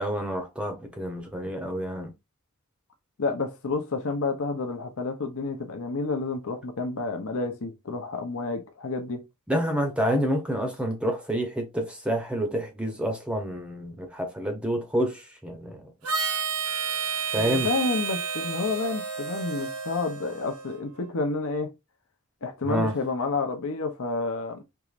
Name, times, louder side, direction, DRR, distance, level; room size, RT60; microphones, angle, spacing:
voice 1, 0.0-2.1 9.5-15.9 17.3-17.7 22.6-22.9, equal, 5° right, 0.7 m, -28 dB
voice 2, 3.2-9.2 17.4-21.7 22.4-24.6, left 3 dB, 65° left, 0.7 m, -30 dB
Harmonica, 16.0-20.8, right 6 dB, 70° right, 0.7 m, -31 dB
4.6 x 3.0 x 2.4 m
head